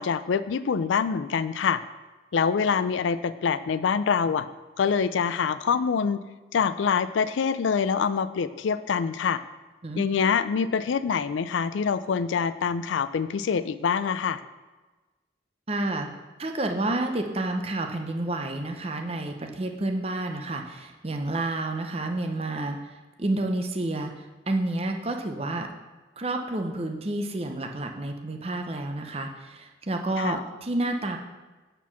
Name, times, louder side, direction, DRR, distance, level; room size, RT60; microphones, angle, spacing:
voice 1, 0.0-1.8 2.3-4.5 4.8-6.2 6.5-9.4 10.0-14.4 30.2-30.4, left 6 dB, 80° left, 14 dB, 0.4 m, -25 dB
voice 2, 15.7-16.1 16.4-22.8 23.2-25.7 26.2-31.2, right 2 dB, 30° right, 4 dB, 0.7 m, -29 dB
8.3 x 4.5 x 5.8 m, 1.2 s
head